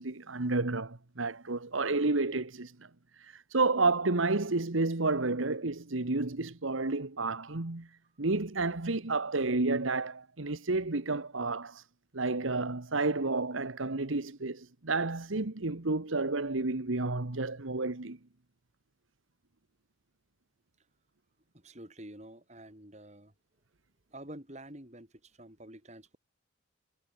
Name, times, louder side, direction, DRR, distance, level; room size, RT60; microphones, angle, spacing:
voice 1, 0.0-2.9 3.2-7.9 8.2-11.8 12.1-18.2, right 3 dB, 80° right, 1.4 m, -31 dB
voice 2, 21.5-23.3 24.1-26.2, right 1 dB, 35° right, 3.9 m, -48 dB
head